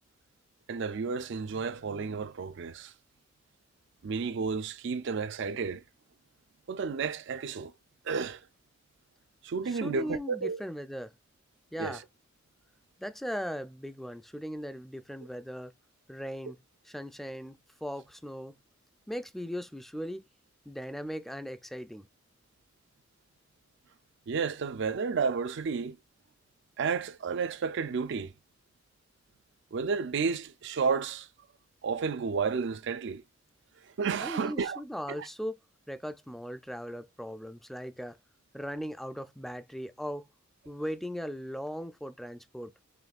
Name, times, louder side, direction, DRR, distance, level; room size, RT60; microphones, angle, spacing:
voice 1, 0.7-2.9 4.0-5.8 6.7-7.7 8.0-8.4 9.4-10.6 11.8-12.0 24.3-26.0 26.8-28.3 29.7-31.3 31.8-33.2 34.0-34.8 35.1-35.3, right 5 dB, 65° right, 0.4 m, -31 dB
voice 2, 9.7-11.1 11.7-12.0 13.0-15.7 16.1-16.6 16.9-18.6 19.1-20.2 20.7-22.1 34.2-35.6 35.9-38.2 38.5-40.3 40.7-42.7, equal, ahead, 0.3 m, -38 dB
5.1 x 3.1 x 2.4 m
head